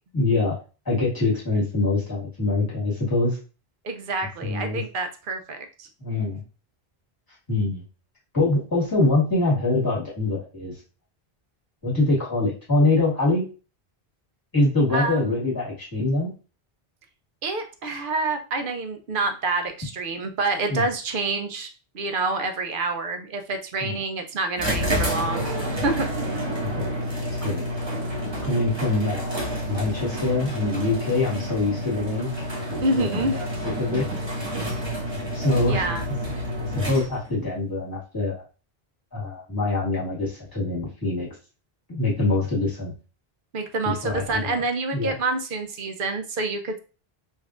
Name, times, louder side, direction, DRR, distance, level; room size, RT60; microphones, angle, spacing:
voice 1, 0.1-0.6 0.8-3.4 4.4-4.8 6.0-6.4 7.5-7.8 8.3-10.8 11.8-13.5 14.5-16.3 20.7-20.9 23.8-23.9 26.6-27.0 27.4-27.6 28.4-29.4 29.7-32.3 33.0-33.5 33.8-34.1 35.3-35.9 36.6-38.4 39.1-41.3 41.9-42.9 43.8-44.6 44.9-45.1, left 2 dB, 20° left, -6 dB, 1.7 m, -24 dB
voice 2, 3.8-5.9 14.9-15.5 17.4-21.7 21.9-25.5 25.8-26.5 28.3-28.6 32.8-33.4 35.7-36.0 43.5-46.8, right 3 dB, 60° right, 6 dB, 0.8 m, -27 dB
sound 1, 24.6-37.4, equal, 25° right, 1.2 m, -29 dB
5.3 x 2.7 x 2.4 m, 0.35 s
omnidirectional pair, 1.0 m